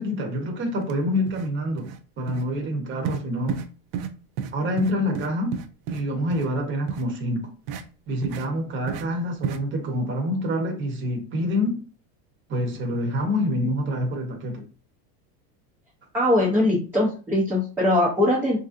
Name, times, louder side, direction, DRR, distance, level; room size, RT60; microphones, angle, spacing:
voice 1, 0.0-1.9 2.2-3.6 4.5-5.6 5.9-7.5 8.1-11.8 12.5-14.6, left 1 dB, 25° right, 0.8 m, -26 dB
sound 1, 0.8-0.9 1.3-1.5 1.8-2.0 2.3-2.4 3.0-3.2 3.5-3.7 3.9-4.1 4.4-4.5 4.8-6.0 6.3-6.5 6.9-7.0 7.7-7.8 8.2-8.5 8.9-9.0 9.4-9.6, right 7 dB, 60° right, 0.5 m, -31 dB
voice 2, 16.1-18.6, left 1 dB, 5° right, 0.4 m, -21 dB
3.3 x 2.6 x 2.5 m
supercardioid pair, 140°, 48 cm